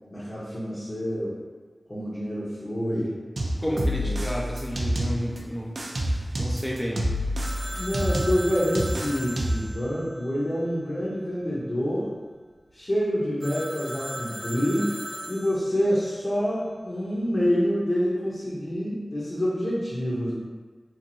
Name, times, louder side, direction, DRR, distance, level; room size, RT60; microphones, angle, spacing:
voice 1, 0.1-1.3 1.9-3.1 3.7-4.1 7.7-12.1 12.7-15.0 15.3-20.3, equal, 45° left, -11 dB, 0.8 m, -27 dB
sound 1, 3.4-5.4 5.8-9.7, equal, 65° right, 0.3 m, -28 dB
voice 2, 3.6-5.8 6.4-7.0, equal, 5° left, -2 dB, 0.5 m, -31 dB
Telephone, 7.4-11.0 13.4-15.9, equal, 80° left, 1.3 m, -38 dB
2.9 x 2.5 x 2.6 m, 1.4 s
wide cardioid pair, 65°, 0 cm